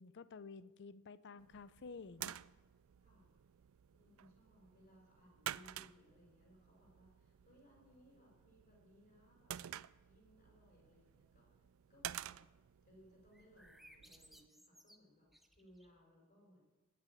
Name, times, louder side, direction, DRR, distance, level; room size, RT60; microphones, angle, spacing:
voice 1, 0.0-2.4, left 4 dB, 55° left, 15 dB, 0.5 m, -52 dB
sound 1, 1.4-14.5, right 12 dB, 65° right, 0.4 m, -51 dB
voice 2, 3.9-9.5 10.0-11.5 11.9-12.4 12.8-16.6, equal, 35° left, -2 dB, 5.6 m, -66 dB
sound 2, 13.3-16.0, equal, ahead, 0.7 m, -64 dB
19.5 x 6.8 x 8.4 m, 1.2 s
head